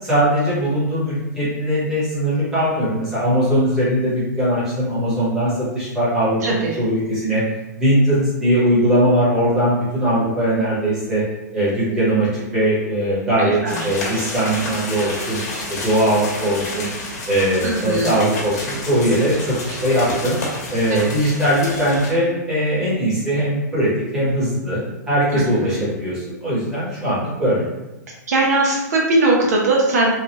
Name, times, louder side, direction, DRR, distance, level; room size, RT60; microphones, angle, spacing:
voice 1, 0.0-7.4 7.8-11.2 11.5-16.9 17.3-20.3 20.7-24.8 25.1-27.6, right 1 dB, 5° right, -11 dB, 1.1 m, -20 dB
voice 2, 6.4-6.8 13.4-13.9 17.6-18.2 20.9-21.0 25.3-25.4 25.7-25.8 28.3-30.1, right 2 dB, 60° right, -2 dB, 0.7 m, -19 dB
sound 1, 13.7-22.1, left 2 dB, 60° left, 1.0 m, -30 dB
3.1 x 2.4 x 2.8 m, 1.0 s
hypercardioid pair, 170°, 10 cm